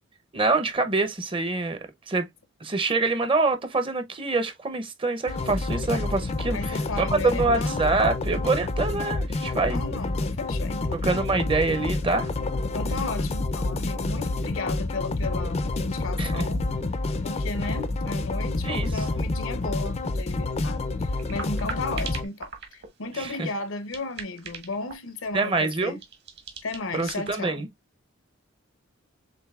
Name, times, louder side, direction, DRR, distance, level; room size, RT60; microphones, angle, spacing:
voice 1, 0.3-1.8 2.1-2.3 2.6-9.8 11.0-12.3 16.2-16.5 18.6-19.0 23.2-23.5 25.3-26.0 26.9-27.7, right 3 dB, 25° right, 0.6 m, -25 dB
sound 1, 5.3-22.2, left 2 dB, 30° left, 0.4 m, -28 dB
voice 2, 6.5-7.8 9.7-11.0 12.7-16.6 17.2-26.0 26.6-27.6, left 3 dB, 75° left, 0.8 m, -34 dB
sound 2, 21.2-27.4, right 5 dB, 55° right, 1.3 m, -40 dB
6.8 x 2.6 x 2.3 m
head